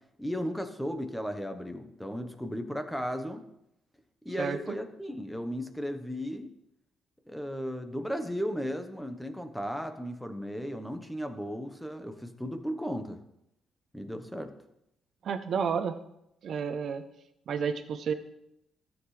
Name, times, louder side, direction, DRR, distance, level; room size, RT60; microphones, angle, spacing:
voice 1, 0.2-3.4 4.2-6.5 7.3-13.2 13.9-14.5, equal, ahead, 7 dB, 1.1 m, -35 dB
voice 2, 15.2-16.0 16.4-17.0 17.5-18.1, right 6 dB, 60° right, 7 dB, 0.7 m, -30 dB
13.5 x 7.7 x 3.3 m, 0.81 s
cardioid pair, 90°, 0 cm